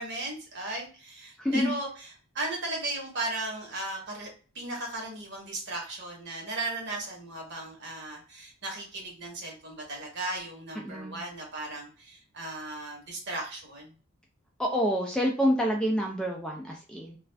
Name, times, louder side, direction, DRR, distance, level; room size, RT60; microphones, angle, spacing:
voice 1, 0.0-2.1 2.3-4.3 4.5-14.0, right 2 dB, 55° right, 0 dB, 1.1 m, -36 dB
voice 2, 1.4-1.7 10.8-11.2 14.6-17.2, equal, 5° left, -1 dB, 0.3 m, -27 dB
2.4 x 2.3 x 3.2 m, 0.37 s
head